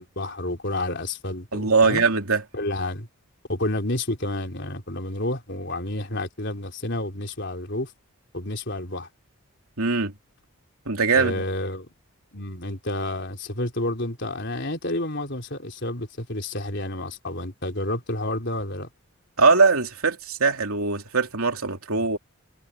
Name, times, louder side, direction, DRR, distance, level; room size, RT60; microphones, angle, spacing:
voice 1, 0.0-2.1 2.5-3.1 3.5-7.9 8.3-9.1 11.1-11.9 12.3-18.9, left 1 dB, 50° left, 4.1 m, -30 dB
voice 2, 1.5-2.4 9.8-10.1 10.9-11.4 19.4-22.2, right 4 dB, 80° right, 3.0 m, -21 dB
head